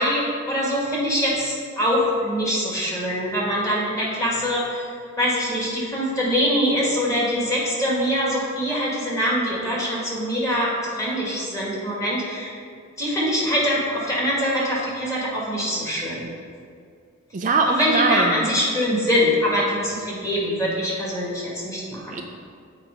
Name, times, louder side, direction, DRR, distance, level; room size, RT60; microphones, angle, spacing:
voice 1, 0.0-4.9 5.2-12.5 13.0-16.3 17.7-22.2, equal, 15° left, -5 dB, 1.9 m, -23 dB
voice 2, 17.3-18.5 22.1-22.2, right 3 dB, 35° right, 3 dB, 0.4 m, -21 dB
7.5 x 4.6 x 5.2 m, 2.3 s
head